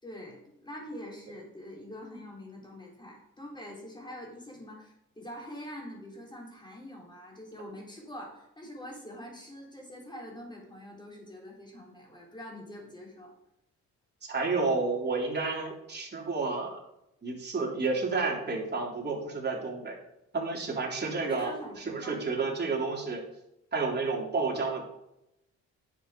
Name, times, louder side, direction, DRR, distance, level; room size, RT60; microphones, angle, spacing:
voice 1, 0.0-13.3 21.3-22.2, equal, 15° left, -2 dB, 4.4 m, -44 dB
voice 2, 14.2-16.8 17.2-20.0 20.3-21.5 21.8-23.2 23.7-24.8, right 4 dB, 35° right, -2 dB, 3.6 m, -30 dB
9.9 x 6.8 x 5.4 m, 0.83 s
cardioid pair, 90°, 30 cm